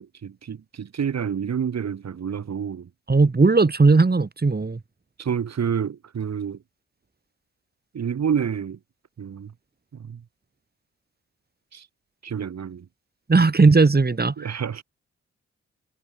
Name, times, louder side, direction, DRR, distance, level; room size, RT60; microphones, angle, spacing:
voice 1, 0.0-2.9 5.2-6.6 7.9-8.8 9.2-9.5 10.1-10.2 11.7-11.9 12.2-12.8 14.4-14.8, right 7 dB, 65° right, 8.0 m, -28 dB
voice 2, 3.1-4.8 13.3-14.5, right 3 dB, 35° right, 4.2 m, -17 dB
supercardioid pair, 45°, 29 cm